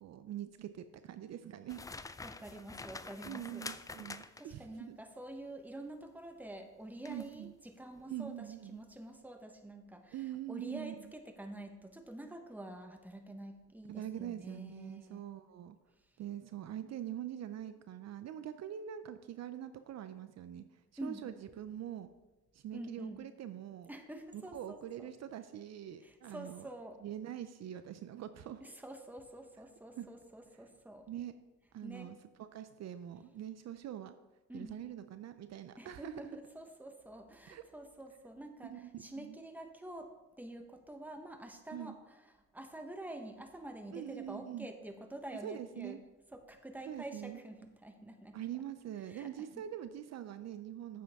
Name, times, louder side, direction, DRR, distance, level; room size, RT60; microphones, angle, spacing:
voice 1, 0.0-1.8 3.2-5.0 7.1-7.5 8.1-8.8 10.1-10.9 13.9-15.8 16.2-22.1 22.5-23.9 24.3-26.7 27.0-28.6 30.0-30.1 31.1-31.3 31.7-34.1 34.5-36.4 37.5-37.6 38.6-39.4 41.7-42.0 43.9-44.7 45.4-46.0 46.9-47.4 48.3-51.0, right 11 dB, 60° right, 11 dB, 0.5 m, -44 dB
sound 1, 1.7-4.6 7.0-7.3 7.8-8.0, left 3 dB, 10° left, 0.3 m, -47 dB
voice 2, 2.2-3.7 4.4-15.2 21.0-21.2 22.7-23.2 23.9-25.1 26.0-27.0 28.6-31.1 31.8-32.1 34.5-34.7 35.8-42.2 42.5-46.0 46.3-48.4 49.1-49.5, right 1 dB, 5° right, 5 dB, 1.1 m, -47 dB
9.3 x 7.7 x 3.5 m, 1.1 s
cardioid pair, 90°, 30 cm